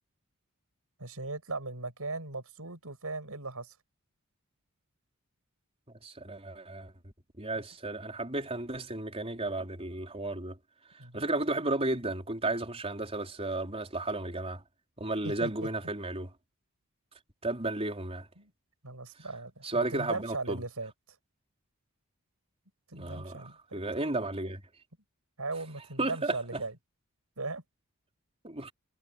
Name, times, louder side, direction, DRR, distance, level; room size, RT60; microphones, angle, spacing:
voice 1, 1.0-3.7 11.0-11.2 15.2-15.5 18.4-18.5 18.8-20.9 22.9-23.8 25.4-26.8 27.4-27.6, right 3 dB, 75° right, 6.2 m, -38 dB
voice 2, 6.0-10.6 11.1-14.6 15.0-16.3 17.4-18.3 19.6-20.6 22.9-23.5 23.7-24.6 26.0-26.6 28.4-28.7, right 2 dB, 25° right, 4.3 m, -33 dB
head